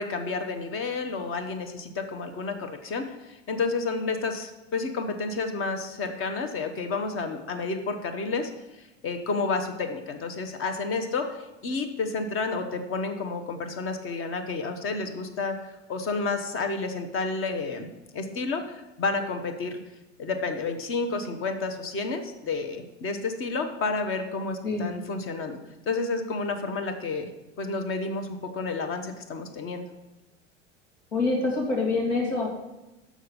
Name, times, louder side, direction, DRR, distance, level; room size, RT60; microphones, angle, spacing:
voice 1, 0.0-8.5 8.8-17.9 18.1-19.8 20.2-25.6 25.8-27.3 27.6-29.9, left 3 dB, 35° left, 7 dB, 1.3 m, -30 dB
voice 2, 31.1-32.5, left 3 dB, 75° left, -1 dB, 2.6 m, -25 dB
6.4 x 6.2 x 6.9 m, 0.99 s
figure-of-eight pair, 80°, 37 cm